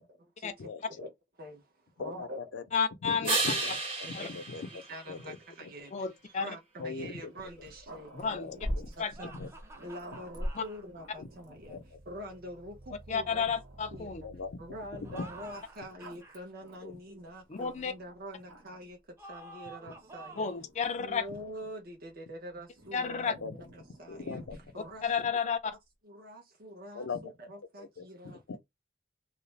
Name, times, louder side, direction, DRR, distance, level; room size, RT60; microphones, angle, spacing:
voice 1, 0.1-1.1 1.4-2.4 4.2-4.3 4.7-8.1 8.9-9.4 9.8-11.8 12.1-13.5 13.9-14.2 14.6-20.5 21.0-23.3 23.7-24.4 24.7-25.6 26.0-28.6, equal, 55° right, 0.7 m, -45 dB
voice 2, 0.6-1.0 2.0-2.6 3.0-5.7 6.8-7.3 8.2-8.9 9.2-9.5 11.2-11.3 11.7-12.0 14.2-14.6 14.9-15.3 16.8-16.9 21.3-21.4 23.3-23.5 24.1-24.6 25.2-25.3 26.9-27.2 27.8-28.1 28.5-28.6, left 4 dB, 90° left, 0.5 m, -40 dB
voice 3, 2.7-3.4 4.1-4.3 5.9-6.6 8.1-8.5 9.0-9.1 10.6-10.7 13.1-14.2 17.5-17.9 20.4-21.3 22.9-23.3 24.8-25.7, left 6 dB, 40° left, 0.4 m, -31 dB
sound 1, 3.2-5.8 11.6-15.5, right 3 dB, 30° right, 0.9 m, -37 dB
Growling, 7.4-12.0 12.7-12.8 13.1-14.2 15.3-18.1 18.4-18.9 19.8-21.6 22.8-25.3, equal, 85° right, 1.0 m, -45 dB
sound 2, 9.1-10.8 15.0-16.4 19.2-20.7, right 3 dB, 15° right, 0.5 m, -50 dB
2.4 x 2.0 x 3.1 m
head